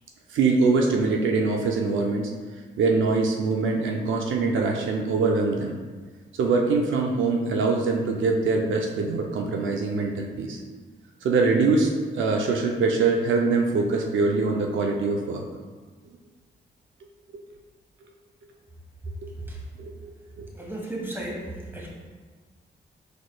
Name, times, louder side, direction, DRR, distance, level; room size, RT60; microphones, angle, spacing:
voice 1, 0.3-2.3 2.8-5.8 6.3-10.6 11.2-15.4 19.2-19.3 19.8-20.5, right 3 dB, 80° right, 1 dB, 0.5 m, -23 dB
voice 2, 20.5-21.9, right 1 dB, 10° right, -3 dB, 1.4 m, -34 dB
4.7 x 4.2 x 2.3 m, 1.4 s
cardioid pair, 55°, 20 cm